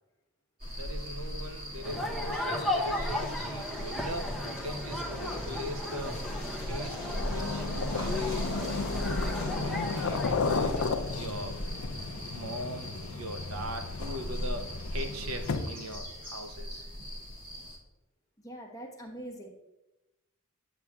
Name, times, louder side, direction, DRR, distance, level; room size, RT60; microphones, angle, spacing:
sound 1, 0.6-17.8, equal, 40° right, 2.0 m, -38 dB
voice 1, 0.8-6.3 6.7-11.6 12.3-17.1, equal, 70° right, 7 dB, 0.7 m, -41 dB
sound 2, 1.8-10.9, left 1 dB, ahead, 0.8 m, -35 dB
sound 3, 6.9-16.0, left 4 dB, 75° left, 0.6 m, -34 dB
voice 2, 18.4-19.5, right 1 dB, 15° left, 0 dB, 1.1 m, -43 dB
9.0 x 8.0 x 2.4 m, 0.98 s
head